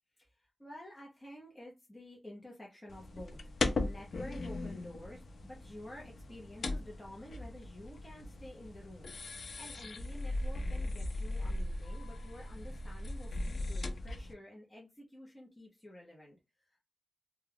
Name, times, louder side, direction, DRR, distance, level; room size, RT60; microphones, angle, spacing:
voice 1, 0.2-9.1 9.6-16.8, left 1 dB, 20° left, 0.7 m, -51 dB
sound 1, 2.9-14.3, left 2 dB, 70° left, 0.4 m, -38 dB
2.3 x 2.2 x 3.3 m
wide cardioid pair, 95°, 0 cm